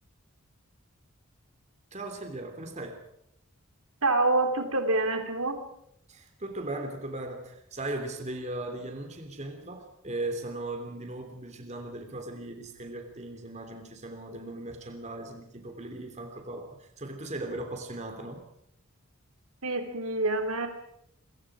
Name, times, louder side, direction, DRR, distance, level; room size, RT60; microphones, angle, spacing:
voice 1, 1.9-3.0 6.1-18.4, right 2 dB, 30° right, 5 dB, 3.2 m, -38 dB
voice 2, 4.0-5.6 19.6-20.7, right 2 dB, 85° right, 5 dB, 3.4 m, -26 dB
27.0 x 23.5 x 5.0 m, 0.74 s
head